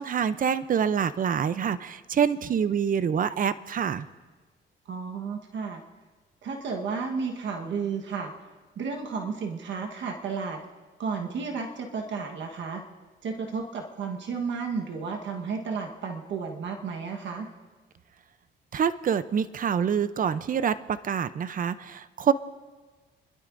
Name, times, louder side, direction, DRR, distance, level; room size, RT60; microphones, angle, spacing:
voice 1, 0.0-4.1 18.7-22.3, right 7 dB, 45° right, 14 dB, 0.6 m, -26 dB
voice 2, 4.8-5.8 6.4-8.3 8.8-10.6 11.0-12.8 13.2-17.5, right 5 dB, 70° right, 2 dB, 1.3 m, -32 dB
29.5 x 12.0 x 2.6 m, 1.4 s
cardioid pair, 90°, 20 cm